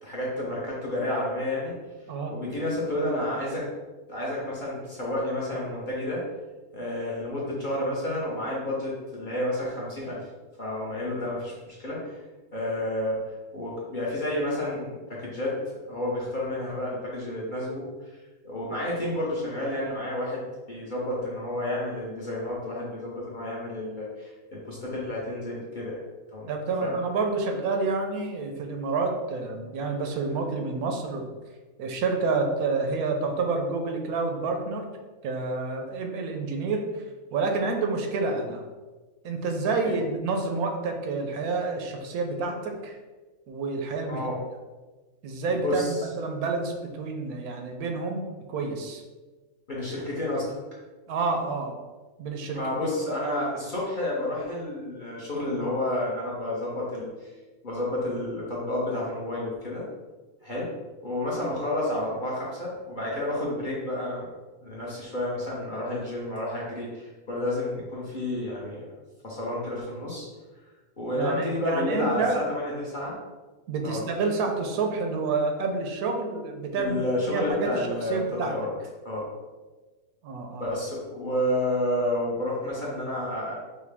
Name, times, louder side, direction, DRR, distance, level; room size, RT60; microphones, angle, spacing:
voice 1, 0.0-1.7 2.3-3.7 4.1-6.2 6.7-10.2 10.6-12.2 12.5-13.2 13.5-15.6 15.9-17.8 18.1-18.2 18.4-26.0 26.3-26.5 26.8-27.0 39.8-39.9 44.1-44.4 45.6-46.0 49.7-50.5 52.5-57.3 57.6-59.8 60.4-60.7 61.0-64.3 64.6-68.9 69.2-70.3 71.0-73.2 73.8-74.0 76.8-78.7 79.0-79.3 80.6-83.5, left 1 dB, 40° left, -6 dB, 0.8 m, -30 dB
voice 2, 26.5-31.3 31.8-34.9 35.2-37.0 37.3-38.6 39.2-43.0 43.5-44.3 45.2-49.0 51.1-51.8 52.2-52.6 71.2-72.4 73.7-78.5 80.2-80.7, right 3 dB, 80° right, 3 dB, 1.1 m, -29 dB
5.6 x 2.2 x 3.4 m, 1.3 s
omnidirectional pair, 1.6 m